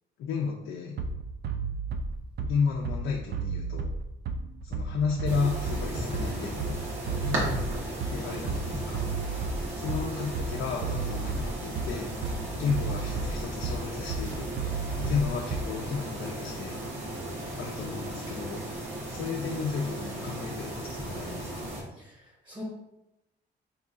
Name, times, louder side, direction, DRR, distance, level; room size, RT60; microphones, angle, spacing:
voice 1, 0.2-1.0 2.4-3.9 4.6-6.8 8.1-9.1 9.7-12.1 12.5-14.5 15.0-16.8 17.6-18.7 19.1-21.7, left 5 dB, 80° left, 0 dB, 0.4 m, -33 dB
Bass drum, 1.0-16.0, right 4 dB, 55° right, 0.4 m, -33 dB
sound 1, 5.2-21.8, right 1 dB, 75° right, 1.1 m, -36 dB
voice 2, 7.2-7.7 14.9-15.2 22.0-22.2 22.5-22.6, left 1 dB, 25° right, -3 dB, 1.0 m, -37 dB
3.6 x 3.0 x 2.4 m, 0.90 s
cardioid pair, 90°, 20 cm